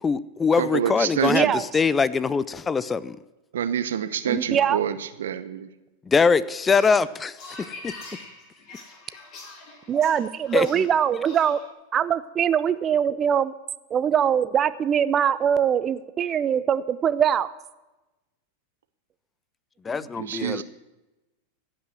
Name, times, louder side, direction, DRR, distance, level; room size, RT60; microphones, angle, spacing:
voice 1, 0.0-3.2 6.1-7.9 10.5-10.9 19.8-20.6, left 5 dB, 20° left, 18 dB, 0.4 m, -23 dB
voice 2, 0.6-1.5 3.5-5.7 20.0-20.6, right 9 dB, 80° right, 12 dB, 0.8 m, -27 dB
voice 3, 1.3-1.6 4.3-4.8 9.9-11.6 11.9-13.5 13.9-17.5, right 8 dB, 30° right, 15 dB, 0.6 m, -22 dB
sound 1, 6.7-11.7, left 3 dB, 40° left, 3.4 m, -44 dB
16.0 x 5.7 x 7.7 m, 1.1 s
hypercardioid pair, 110°, 0 cm